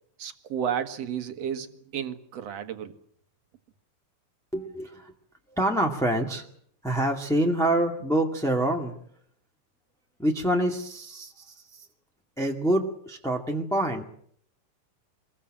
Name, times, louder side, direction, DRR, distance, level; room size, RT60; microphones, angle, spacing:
voice 1, 0.2-2.9, right 8 dB, 55° right, 8 dB, 2.4 m, -32 dB
voice 2, 4.5-5.1 5.6-6.4 6.8-8.9 10.2-11.8 12.4-14.0, right 1 dB, ahead, 0 dB, 1.3 m, -26 dB
25.0 x 21.5 x 7.6 m, 0.67 s
omnidirectional pair, 3.8 m